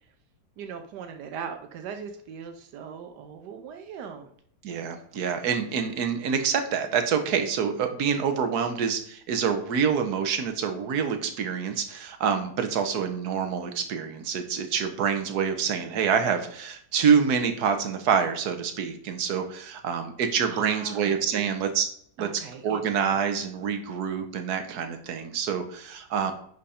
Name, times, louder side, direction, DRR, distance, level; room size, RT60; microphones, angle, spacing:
voice 1, 0.6-4.3 20.5-21.5 22.2-22.8 23.1-23.2, right 7 dB, 90° right, 6 dB, 1.3 m, -39 dB
voice 2, 4.6-21.9 22.2-22.3 22.6-26.3, right 7 dB, 70° right, 6 dB, 1.5 m, -26 dB
10.0 x 4.0 x 4.2 m, 0.62 s
omnidirectional pair, 1.7 m